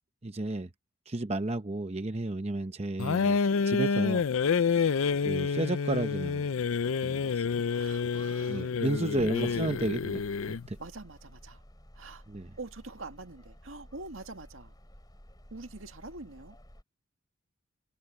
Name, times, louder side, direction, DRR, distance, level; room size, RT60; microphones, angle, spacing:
voice 1, 0.2-0.7 1.1-3.4 3.7-4.2 5.2-6.4 7.0-7.4 8.5-10.2 10.7-10.8 12.3-12.5, right 2 dB, 30° right, 0.7 m, -32 dB
sound 1, 3.0-10.7, left 5 dB, 75° left, 0.5 m, -28 dB
voice 2, 7.7-8.7 9.1-9.9 10.8-11.6 11.9-12.3 12.6-14.8 15.5-16.6, right 3 dB, 75° right, 1.9 m, -45 dB
sound 2, 9.1-16.8, equal, 20° left, 5.3 m, -53 dB
head